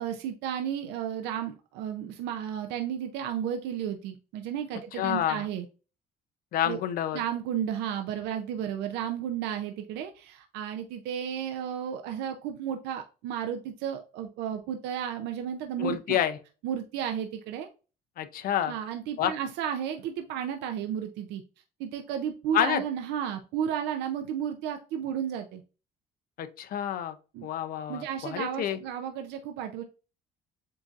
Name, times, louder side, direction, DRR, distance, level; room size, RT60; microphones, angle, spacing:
voice 1, 0.0-5.7 6.6-6.8 7.1-16.2 16.6-17.7 18.7-21.4 21.8-25.6 27.3-27.5 27.9-29.8, right 9 dB, 90° right, 6 dB, 0.5 m, -33 dB
voice 2, 5.0-5.4 6.5-7.2 15.8-16.4 18.2-18.7 19.2-19.3 22.5-22.8 26.4-27.1 27.4-28.0 28.3-28.8, left 10 dB, 60° left, 10 dB, 0.6 m, -28 dB
7.5 x 2.6 x 2.4 m, 0.34 s
cardioid pair, 110°, 17 cm